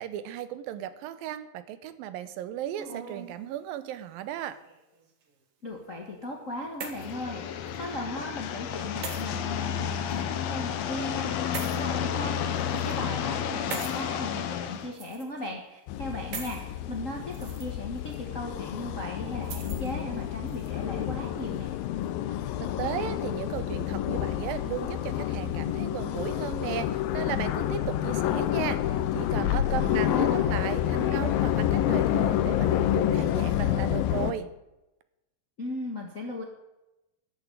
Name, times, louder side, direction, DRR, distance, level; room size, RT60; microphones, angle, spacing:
voice 1, 0.0-4.6 22.6-34.5, right 11 dB, 80° right, 13 dB, 2.6 m, -36 dB
sound 1, 2.8-3.4 4.3-5.0 6.3-7.2 7.7-7.8 9.0-9.2 10.1-10.2 11.5-11.8 12.6-12.9 13.7-14.0 14.9-15.5 16.3-16.6 17.2-17.7 18.1-18.2 19.4-19.9 20.5-20.7, right 5 dB, 50° right, 2.2 m, -40 dB
voice 2, 5.6-21.8 29.8-31.3 35.6-36.4, left 2 dB, 45° left, 1 dB, 1.0 m, -37 dB
sound 2, 6.9-14.9, left 8 dB, 70° left, 1.7 m, -31 dB
sound 3, 15.9-34.3, left 12 dB, 90° left, 2.6 m, -28 dB
13.0 x 7.1 x 9.8 m, 0.96 s
omnidirectional pair, 4.1 m